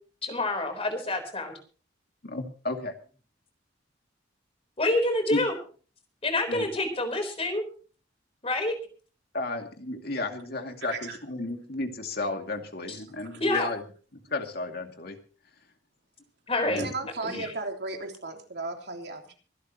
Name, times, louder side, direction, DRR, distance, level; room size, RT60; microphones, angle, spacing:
voice 1, 0.2-1.5 4.8-5.5 6.2-7.6 8.4-8.7 12.9-13.0 13.4-13.7 16.5-16.8 17.2-17.5, left 2 dB, 30° left, 3.9 m, -27 dB
voice 2, 2.2-2.9 5.3-5.4 6.5-6.7 9.3-13.8 14.3-15.2 16.6-16.9 17.3-17.5, left 2 dB, 55° left, 2.4 m, -33 dB
voice 3, 10.8-11.2 13.3-13.4 16.8-19.3, right 3 dB, 60° right, 3.2 m, -35 dB
24.5 x 12.0 x 3.0 m
head